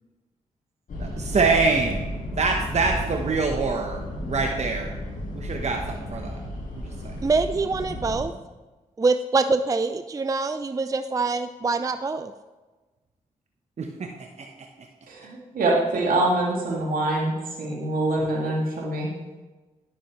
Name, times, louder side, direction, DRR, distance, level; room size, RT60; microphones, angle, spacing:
sound 1, 0.9-8.2, equal, 65° left, 2.3 m, -33 dB
voice 1, 1.0-2.0 2.4-4.0 4.3-4.9 5.3-6.4 6.7-7.2 13.8-14.5, right 4 dB, 50° right, 2 dB, 0.9 m, -25 dB
voice 2, 7.2-8.3 9.0-12.3, right 3 dB, 25° right, 10 dB, 0.4 m, -24 dB
voice 3, 15.1-17.3 17.6-19.1, right 2 dB, 75° right, -3 dB, 2.2 m, -24 dB
9.9 x 7.3 x 3.1 m, 1.2 s
supercardioid pair, 50°, 15 cm